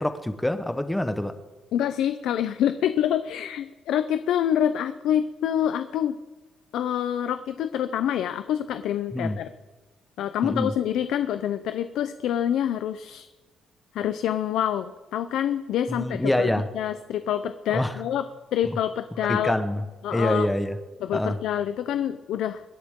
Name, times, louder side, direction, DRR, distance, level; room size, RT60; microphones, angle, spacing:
voice 1, 0.0-1.3 9.1-9.4 10.4-10.7 15.9-16.7 17.7-18.0 18.6-18.8 19.2-19.8 20.1-20.8 21.1-21.4, left 1 dB, 5° left, 9 dB, 1.1 m, -26 dB
voice 2, 1.7-6.2 6.7-9.5 10.2-13.3 13.9-16.5 16.7-18.2 18.5-19.5 20.0-20.5 21.0-22.6, left 10 dB, 80° left, 11 dB, 0.6 m, -26 dB
25.5 x 11.0 x 3.7 m, 1.2 s
cardioid pair, 130°, 0 cm